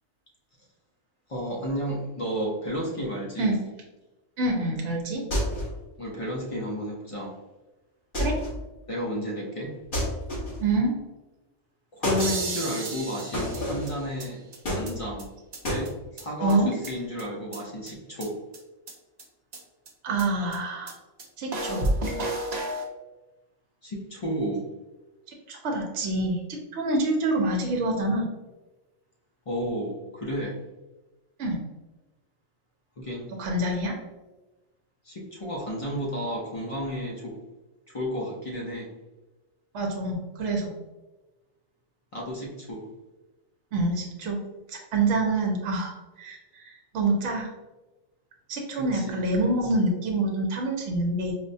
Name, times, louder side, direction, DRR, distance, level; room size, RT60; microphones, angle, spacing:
voice 1, 1.3-3.5 6.0-7.4 8.9-9.8 11.9-14.4 14.7-15.3 15.7-18.4 23.8-24.6 29.5-30.6 33.0-33.3 35.0-37.4 37.9-38.9 42.1-42.9 48.8-49.2, equal, 60° left, -2 dB, 0.3 m, -32 dB
voice 2, 4.4-5.2 8.2-8.4 10.6-10.9 16.4-16.7 20.0-20.9 21.4-21.8 25.5-28.3 31.4-31.6 33.4-34.0 39.7-40.7 43.7-44.4 44.7-47.5 48.5-51.3, right 2 dB, 70° right, 0 dB, 0.9 m, -26 dB
sound 1, 5.3-5.8 8.1-8.6 9.9-10.7 12.0-12.4 13.3-14.0 14.6-15.3 15.6-15.9, left 1 dB, 45° left, 1.2 m, -29 dB
sound 2, 12.2-14.3 14.5-14.6 14.9-15.0 15.2-15.3 15.5-15.6 15.9-16.0 16.2-16.3 16.5-17.2 17.5-17.6 17.9-18.0 18.2-18.3 18.5-18.6 18.9-19.0 19.2-19.3 19.5-19.6 19.9-20.0 20.2-20.3 20.5-20.6 20.9-21.0 21.2-21.3 21.5-22.9, right 1 dB, 50° right, 0.5 m, -31 dB
4.8 x 2.1 x 2.6 m, 1.1 s
omnidirectional pair, 1.3 m